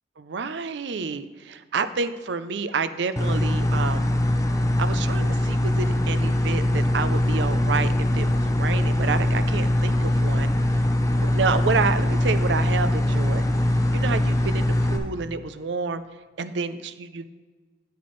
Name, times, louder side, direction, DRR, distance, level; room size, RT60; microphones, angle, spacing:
voice 1, 0.2-4.1 4.8-10.5 11.2-13.4 13.9-16.0 16.4-17.3, right 5 dB, 85° right, 12 dB, 0.5 m, -29 dB
sound 1, 3.2-15.0, left 1 dB, 20° left, 0.6 m, -22 dB
10.5 x 8.0 x 3.2 m, 1.4 s
head